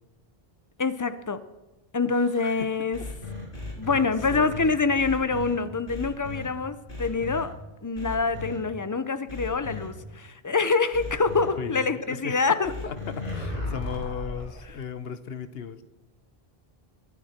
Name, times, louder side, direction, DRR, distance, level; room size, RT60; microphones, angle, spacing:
voice 1, 0.8-1.4 1.9-3.0 3.8-7.5 7.8-12.7, left 4 dB, 25° left, 12 dB, 0.5 m, -25 dB
voice 2, 2.0-2.7 3.6-4.6 11.5-15.8, left 7 dB, 75° left, 12 dB, 1.0 m, -37 dB
sound 1, 2.9-5.5 5.9-6.5 6.9-7.4 7.9-8.6 9.3-9.9 10.9-11.5 12.6-14.6, left 2 dB, 55° left, 3.4 m, -35 dB
23.0 x 9.8 x 4.4 m, 1.1 s
omnidirectional pair, 1.1 m